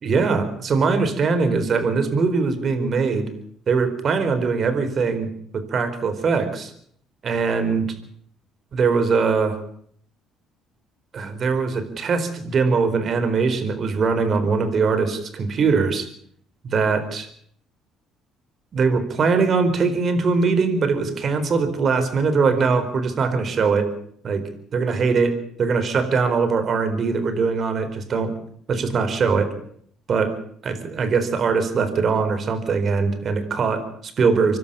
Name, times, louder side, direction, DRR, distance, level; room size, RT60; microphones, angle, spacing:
voice 1, 0.0-3.3 3.7-6.7 7.2-7.9 8.7-9.6 11.1-16.1 16.6-17.3 18.7-23.9 24.2-28.3 28.7-29.5 30.1-30.4 30.6-34.6, right 4 dB, 50° right, 10 dB, 4.4 m, -21 dB
26.0 x 12.0 x 8.7 m, 0.62 s
supercardioid pair, 75°, 0 cm